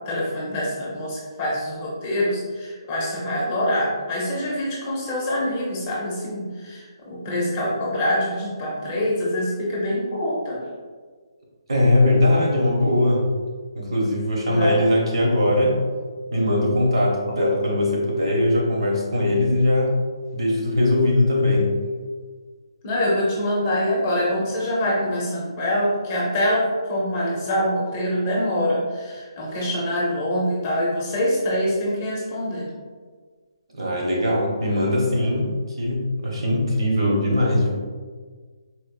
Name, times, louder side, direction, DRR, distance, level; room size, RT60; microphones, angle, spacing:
voice 1, 0.0-10.6 14.5-14.9 22.8-32.7, left 1 dB, 20° left, -6 dB, 0.6 m, -25 dB
voice 2, 11.7-13.2 13.7-15.8 16.3-20.0 20.3-21.7 33.7-35.5 35.8-37.8, left 1 dB, 75° right, -2 dB, 1.1 m, -20 dB
4.2 x 2.5 x 2.2 m, 1.5 s
hypercardioid pair, 170°, 3 cm